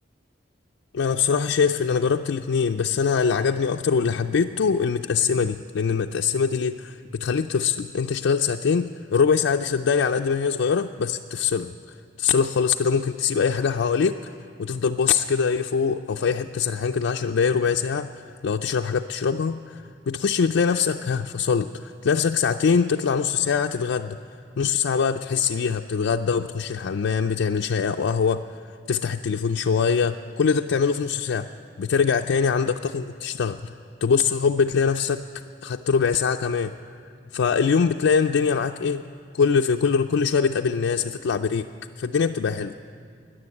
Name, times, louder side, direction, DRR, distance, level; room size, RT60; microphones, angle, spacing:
voice 1, 0.9-11.7 12.2-14.3 14.6-24.2 24.6-28.4 28.9-31.5 31.8-33.7 34.0-35.2 35.6-36.7 37.3-39.0 39.3-41.7 42.0-42.8, left 6 dB, 90° left, 3 dB, 0.4 m, -23 dB
14.5 x 10.0 x 9.5 m, 2.3 s
head